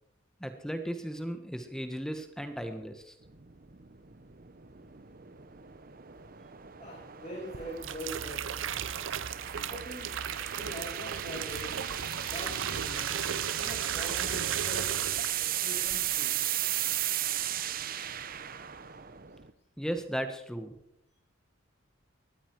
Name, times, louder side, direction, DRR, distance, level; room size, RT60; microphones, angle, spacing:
voice 1, 0.4-3.2 19.8-20.7, equal, 5° left, 8 dB, 1.4 m, -36 dB
sound 1, 3.3-19.5, right 11 dB, 45° right, 0.9 m, -36 dB
voice 2, 6.8-8.5 8.8-9.1 9.7-10.1 10.5-11.7 12.2-13.2 13.6-14.9 15.4-16.4, equal, 35° left, -3 dB, 6.1 m, -43 dB
sound 2, 7.5-15.6 15.9-16.2, right 8 dB, 75° right, 0.7 m, -36 dB
19.0 x 13.5 x 4.8 m, 0.80 s
head